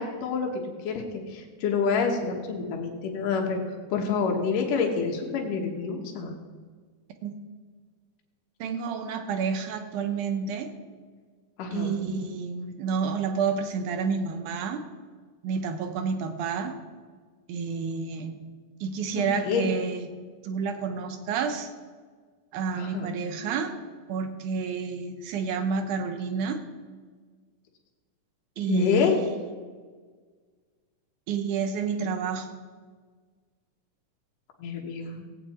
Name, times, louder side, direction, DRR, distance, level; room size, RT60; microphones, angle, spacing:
voice 1, 0.0-6.3 11.6-12.0 19.2-19.7 22.7-23.1 28.7-29.2 34.6-35.2, left 5 dB, 80° left, 1 dB, 2.9 m, -28 dB
voice 2, 8.6-10.7 11.7-14.8 15.4-16.7 17.5-18.4 18.8-20.1 20.4-21.7 22.5-23.7 24.1-26.6 28.6-29.3 31.3-32.6, right 5 dB, 75° right, 7 dB, 2.4 m, -29 dB
17.5 x 8.8 x 4.3 m, 1.5 s
omnidirectional pair, 3.8 m